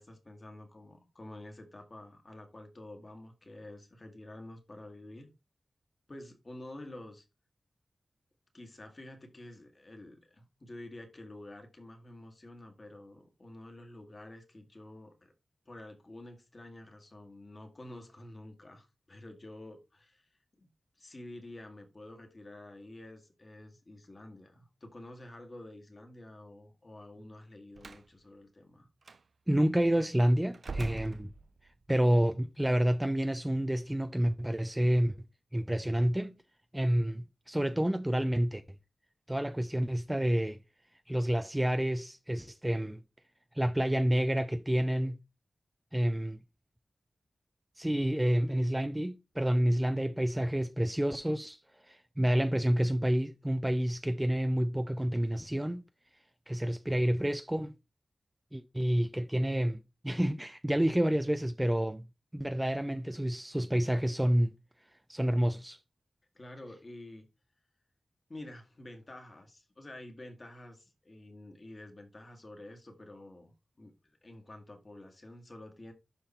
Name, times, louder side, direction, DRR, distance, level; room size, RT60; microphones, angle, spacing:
voice 1, 0.0-5.3 6.1-7.2 8.5-15.3 15.7-20.7 21.0-28.9 66.3-67.3 68.3-75.9, left 1 dB, 30° left, 2.0 m, -49 dB
Slam, 27.7-28.1 29.0-29.2 30.5-31.8, right 3 dB, 55° right, 0.6 m, -42 dB
voice 2, 29.5-31.3 31.9-35.2 35.5-36.3 36.7-38.6 39.3-40.6 41.1-43.0 43.5-45.2 45.9-46.4 47.8-51.6 51.8-55.8 56.5-57.7 58.5-62.0 62.3-64.5 65.1-65.8, equal, 10° right, 0.5 m, -29 dB
11.5 x 3.9 x 4.2 m
wide cardioid pair, 130°, 0 cm